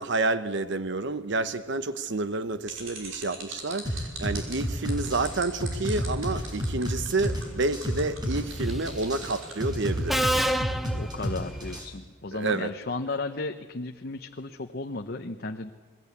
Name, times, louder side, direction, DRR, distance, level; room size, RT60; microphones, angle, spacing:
voice 1, 0.0-10.3 12.3-12.7, right 3 dB, 60° right, 1.0 m, -29 dB
sound 1, 2.7-9.6, right 5 dB, 80° right, 6.0 m, -41 dB
sound 2, 3.8-11.8, equal, 20° right, 5.3 m, -30 dB
Subway metro underground, 8.6-9.0 10.1-11.8, right 1 dB, ahead, 0.7 m, -28 dB
voice 2, 10.9-15.7, left 3 dB, 50° left, 0.9 m, -34 dB
27.5 x 20.5 x 8.5 m
head